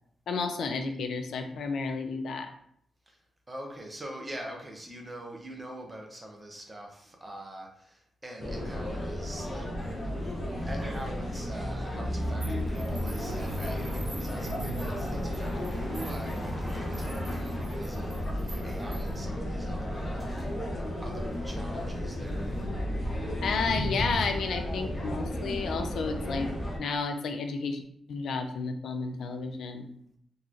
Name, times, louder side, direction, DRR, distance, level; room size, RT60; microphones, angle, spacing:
voice 1, 0.3-2.5 23.4-26.5 26.8-27.8 28.1-29.9, left 4 dB, 70° left, 5 dB, 0.4 m, -31 dB
voice 2, 3.5-9.7 10.7-22.5, right 1 dB, 15° right, 1 dB, 0.6 m, -44 dB
sound 1, 8.4-26.8, equal, 30° left, 0.9 m, -33 dB
sound 2, 9.8-22.6, equal, 5° left, 1.1 m, -45 dB
sound 3, 12.4-19.2, right 3 dB, 50° right, 1.3 m, -49 dB
3.9 x 2.9 x 2.5 m, 0.69 s
wide cardioid pair, 150°, 0 cm